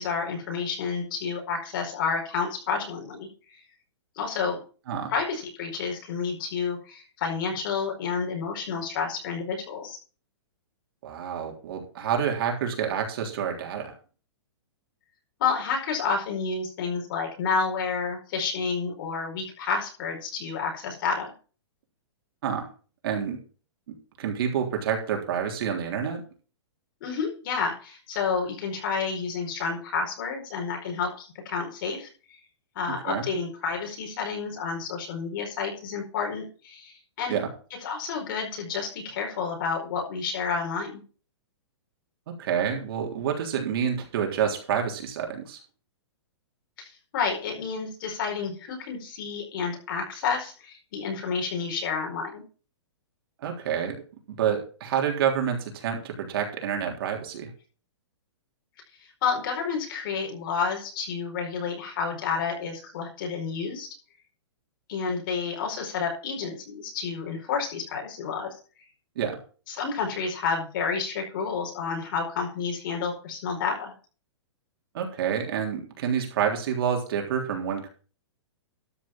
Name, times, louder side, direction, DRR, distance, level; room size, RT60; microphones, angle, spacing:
voice 1, 0.0-3.6 4.1-4.6 5.1-10.0 15.4-21.3 27.0-32.4 32.7-37.4 37.8-41.0 46.8-46.9 47.1-52.4 59.2-63.9 64.9-68.5 69.7-73.9, left 5 dB, 45° left, 1 dB, 4.8 m, -30 dB
voice 2, 11.0-13.9 22.4-22.7 23.0-23.4 23.9-26.2 33.0-33.2 37.3-37.5 42.4-45.6 53.4-54.0 54.3-57.5 69.2-69.4 74.9-77.9, right 8 dB, 55° right, 2 dB, 3.5 m, -28 dB
13.0 x 5.1 x 7.1 m, 0.38 s
hypercardioid pair, 155°, 15 cm